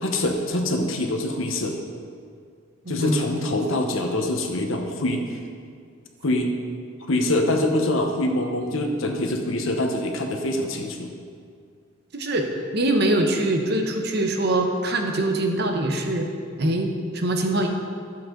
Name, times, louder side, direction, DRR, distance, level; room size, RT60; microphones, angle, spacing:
voice 1, 0.0-1.8 2.9-5.3 6.2-6.5 7.1-11.1, left 1 dB, 70° left, 3 dB, 1.0 m, -24 dB
voice 2, 2.8-3.2 12.1-16.3 16.6-17.7, right 1 dB, 50° right, 3 dB, 0.9 m, -23 dB
12.0 x 7.3 x 3.8 m, 2.2 s
head